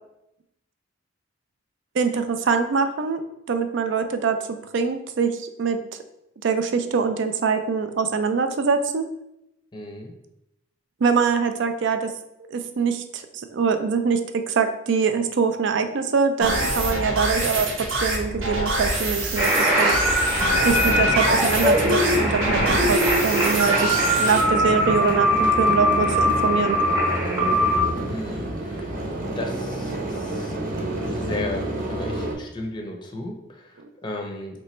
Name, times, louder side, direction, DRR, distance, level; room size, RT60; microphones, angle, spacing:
voice 1, 1.9-5.8 6.4-9.1 11.0-12.1 12.5-17.7 18.0-20.0 20.6-26.8 33.8-33.9, right 5 dB, 60° right, 8 dB, 0.4 m, -24 dB
voice 2, 9.7-10.1 28.1-28.9 29.4-30.6 30.9-34.6, left 2 dB, 25° left, 2 dB, 0.6 m, -35 dB
sound 1, 16.4-24.4, right 2 dB, 85° right, 1.0 m, -26 dB
sound 2, 19.4-27.8, equal, 20° right, 0.9 m, -21 dB
sound 3, 19.6-32.3, right 1 dB, 45° right, 0.9 m, -30 dB
3.2 x 3.0 x 4.3 m, 0.84 s
head